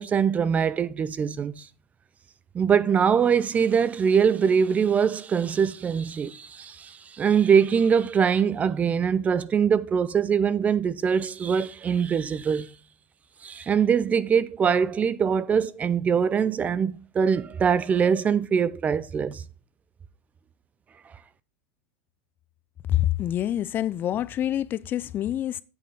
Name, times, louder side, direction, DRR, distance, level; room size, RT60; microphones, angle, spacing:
voice 1, 0.0-1.7 2.5-12.7 13.4-19.4, right 7 dB, 25° right, 0.5 m, -23 dB
voice 2, 22.9-25.6, left 12 dB, 35° left, 0.5 m, -26 dB
8.3 x 7.7 x 3.5 m
hypercardioid pair, 110°, 6 cm